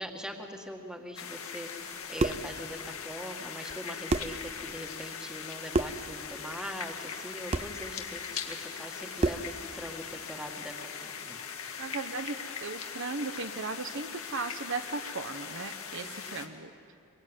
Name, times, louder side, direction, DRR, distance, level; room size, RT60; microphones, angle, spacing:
voice 1, 0.0-11.4 16.0-16.4, equal, 5° right, 3 dB, 2.0 m, -42 dB
sound 1, 1.2-16.5, left 6 dB, 75° left, 2.1 m, -40 dB
sound 2, 1.9-2.5 3.7-3.8 4.1-4.4 5.7-6.1 7.5-7.8 9.2-9.5, right 2 dB, 30° right, 0.6 m, -29 dB
voice 2, 11.8-16.7, right 4 dB, 60° right, 7 dB, 1.0 m, -37 dB
26.0 x 23.0 x 9.3 m, 2.4 s
head